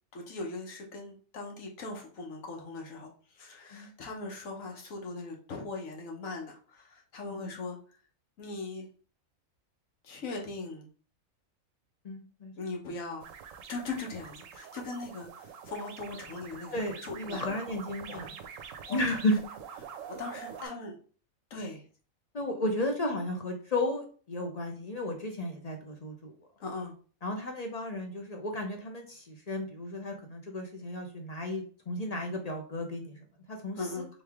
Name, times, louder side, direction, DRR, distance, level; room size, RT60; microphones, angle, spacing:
voice 1, 0.1-7.8 8.4-8.9 10.0-10.9 12.6-13.3 13.7-17.4 18.1-19.0 19.8-21.0 21.5-21.9 26.6-26.9 33.7-34.1, left 3 dB, 75° left, 0 dB, 1.4 m, -40 dB
voice 2, 12.0-12.5 16.7-18.3 18.9-19.4 20.6-20.7 22.3-26.3 27.2-33.2 33.5-33.8, left 1 dB, 40° left, 3 dB, 0.6 m, -33 dB
sound 1, 13.2-20.7, right 7 dB, 75° right, 0.9 m, -46 dB
3.9 x 3.2 x 3.5 m, 0.40 s
omnidirectional pair, 1.4 m